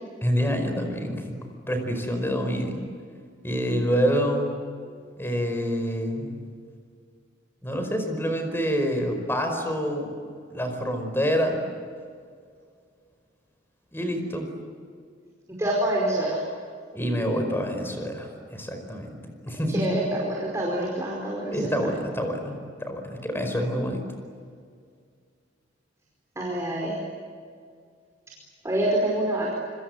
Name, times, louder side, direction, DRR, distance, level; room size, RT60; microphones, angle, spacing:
voice 1, 0.2-1.4 1.7-2.8 3.4-4.6 5.2-6.4 7.6-10.1 10.5-11.6 13.9-14.5 16.9-20.2 21.5-24.0, equal, 15° left, 5 dB, 5.0 m, -27 dB
voice 2, 15.5-16.4 19.7-21.9 26.3-27.0 28.6-29.6, right 1 dB, 15° right, -3 dB, 5.0 m, -26 dB
26.5 x 26.0 x 8.0 m, 2.1 s
head